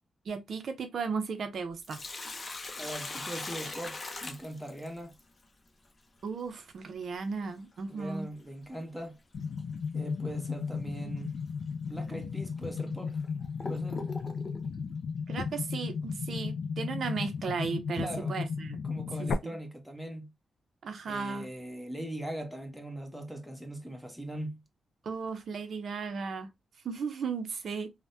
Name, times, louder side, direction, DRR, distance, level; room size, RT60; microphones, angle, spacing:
voice 1, 0.3-2.0 6.2-8.3 15.3-18.8 19.2-19.6 20.8-21.5 25.0-26.5 26.8-27.9, right 5 dB, 70° right, 0.5 m, -35 dB
Sink (filling or washing), 1.6-5.2 7.6-7.7 9.6-9.8 10.3-10.4 11.2-11.3 12.0-12.1 12.8-14.7, left 2 dB, 35° left, 0.6 m, -40 dB
voice 2, 2.8-5.2 7.9-9.2 9.9-11.4 11.9-13.2 13.7-14.1 18.0-18.4 18.8-20.3 21.1-24.6, right 1 dB, ahead, 0.8 m, -40 dB
sound 1, 9.3-19.3, left 5 dB, 80° left, 0.4 m, -35 dB
3.3 x 2.1 x 2.6 m
cardioid pair, 100°, 0 cm